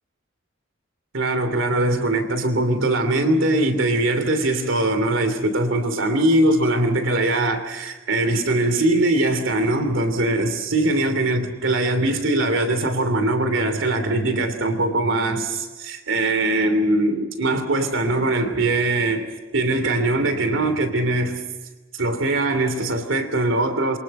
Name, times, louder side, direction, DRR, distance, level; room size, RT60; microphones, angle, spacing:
voice 1, 1.1-19.3 19.5-21.4 21.9-24.0, right 2 dB, 75° right, 2.9 m, -21 dB
27.5 x 24.5 x 5.5 m
head